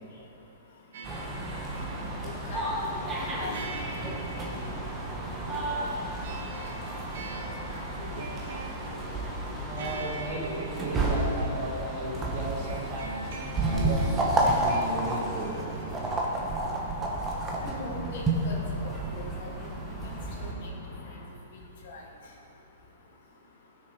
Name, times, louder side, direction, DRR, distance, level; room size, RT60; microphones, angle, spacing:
sound 1, 0.9-2.9 3.4-5.7 6.2-16.2, right 2 dB, 60° right, 1.7 m, -42 dB
sound 2, 1.0-20.5, right 2 dB, 15° right, 1.0 m, -31 dB
sound 3, 1.4-21.3, left 1 dB, 25° left, 1.2 m, -46 dB
voice 1, 2.5-3.5 4.0-4.2 5.5-5.9 6.3-6.4 6.7-6.8 7.7-8.1 17.6-18.6 18.8-19.5 20.4-20.7 21.8-22.0, left 3 dB, 50° left, -1 dB, 1.8 m, -41 dB
voice 2, 9.7-15.6, right 1 dB, 35° right, -2 dB, 1.7 m, -35 dB
15.0 x 6.4 x 4.7 m, 3.0 s
hypercardioid pair, 165°, 0 cm